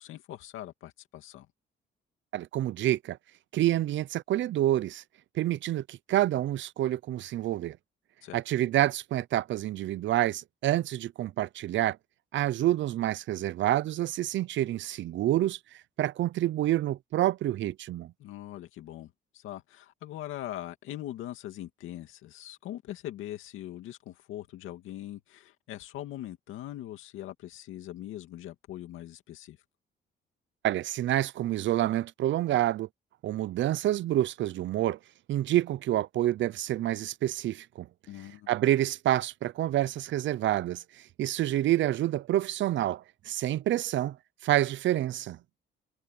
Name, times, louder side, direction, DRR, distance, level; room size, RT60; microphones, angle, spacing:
voice 1, 0.0-1.5 8.2-8.4 18.2-29.6 38.1-38.5, left 13 dB, 90° left, 2.5 m, -41 dB
voice 2, 2.3-3.2 3.5-5.0 5.3-7.8 8.3-12.0 12.3-18.1 30.6-32.9 33.2-35.0 35.3-37.9 38.5-44.2 44.4-45.4, right 13 dB, 70° right, 0.6 m, -28 dB
cardioid pair, 90°, 20 cm